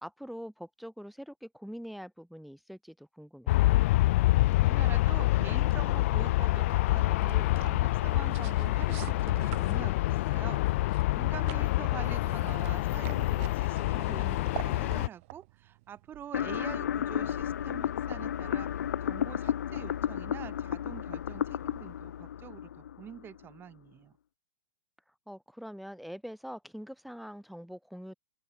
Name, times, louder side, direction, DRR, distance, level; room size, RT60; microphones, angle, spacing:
voice 1, 0.0-3.6 11.8-12.2 25.3-28.1, equal, ahead, 1.3 m, -44 dB
Aircraft, 3.5-15.1, left 18 dB, 55° left, 0.3 m, -27 dB
voice 2, 4.6-18.7 19.0-24.1, right 10 dB, 25° right, 4.4 m, -46 dB
sound 1, 5.7-16.8, right 22 dB, 55° right, 6.7 m, -48 dB
sound 2, 16.3-23.4, left 9 dB, 80° left, 1.0 m, -33 dB
open air
hypercardioid pair, 120°, 9 cm